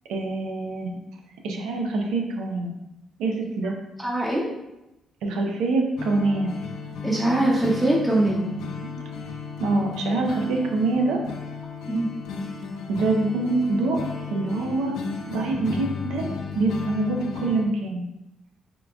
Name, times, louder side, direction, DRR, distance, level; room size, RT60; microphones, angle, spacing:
voice 1, 0.1-1.0 1.4-2.7 3.2-3.7 5.2-6.5 9.6-11.2 12.9-14.0 14.3-15.0 15.3-18.0, right 2 dB, 90° right, 2 dB, 0.6 m, -25 dB
voice 2, 4.0-4.5 7.0-8.5 11.9-12.1, right 1 dB, 10° right, -5 dB, 0.6 m, -22 dB
sound 1, 6.0-17.6, left 5 dB, 80° left, 0.5 m, -35 dB
3.7 x 3.4 x 2.4 m, 0.93 s
cardioid pair, 90°, 0 cm